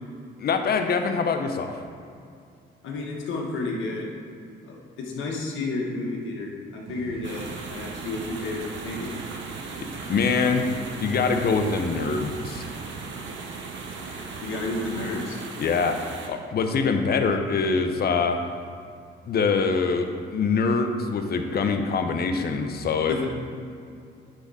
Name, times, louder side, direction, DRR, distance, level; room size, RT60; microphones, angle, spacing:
voice 1, 0.4-1.8 10.1-10.7 11.0-12.6 15.6-18.4 19.3-23.3, left 4 dB, 50° left, 6 dB, 0.8 m, -24 dB
voice 2, 2.8-4.1 4.7-9.1 14.4-15.4 23.1-23.3, left 2 dB, 75° left, -2 dB, 1.5 m, -31 dB
sound 1, 6.9-15.3, right 7 dB, 50° right, 0.4 m, -41 dB
sound 2, 7.2-16.3, right 3 dB, 70° right, 1.0 m, -39 dB
9.8 x 3.7 x 4.2 m, 2.5 s
cardioid pair, 90°, 20 cm